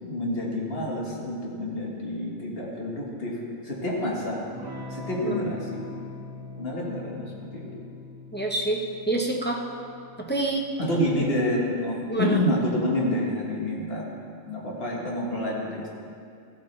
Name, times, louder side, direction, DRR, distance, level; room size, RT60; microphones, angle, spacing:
voice 1, 0.0-4.4 4.9-5.8 6.6-7.8 10.8-14.1 14.4-15.9, left 1 dB, 45° left, -3 dB, 1.7 m, -28 dB
Electric guitar / Strum, 4.5-12.8, left 2 dB, 15° right, 1.5 m, -42 dB
voice 2, 8.3-9.6 10.3-10.6 12.1-12.4, right 2 dB, 10° left, -1 dB, 0.5 m, -27 dB
14.0 x 8.4 x 3.2 m, 2.4 s
omnidirectional pair, 1.5 m